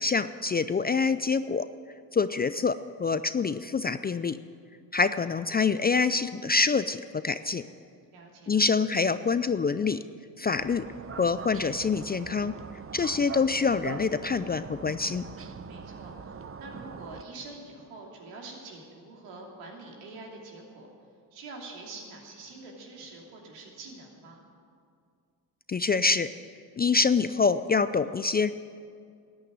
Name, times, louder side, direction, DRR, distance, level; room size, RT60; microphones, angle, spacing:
voice 1, 0.0-1.7 2.1-4.4 4.9-7.6 8.5-10.0 10.4-10.8 11.2-12.6 12.9-15.2 25.7-26.3 26.8-28.5, left 4 dB, 20° left, 13 dB, 0.4 m, -26 dB
voice 2, 8.1-8.6 15.6-20.9 21.3-24.4, right 3 dB, 80° right, -1 dB, 2.9 m, -45 dB
sound 1, 10.5-17.2, right 6 dB, 25° right, 0.8 m, -42 dB
13.5 x 9.0 x 9.3 m, 2.3 s
hypercardioid pair, 55°, 49 cm